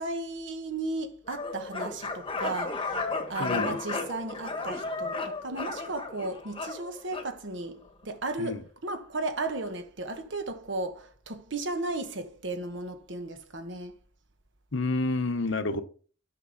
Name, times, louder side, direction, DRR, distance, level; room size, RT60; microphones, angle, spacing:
voice 1, 0.0-14.0 15.7-15.8, right 2 dB, 60° right, 1.2 m, -35 dB
sound 1, 1.3-7.3, left 3 dB, 25° left, 1.1 m, -34 dB
voice 2, 3.4-3.8 8.4-8.6 14.7-15.8, left 3 dB, 65° left, 0.9 m, -29 dB
10.0 x 6.0 x 4.0 m
head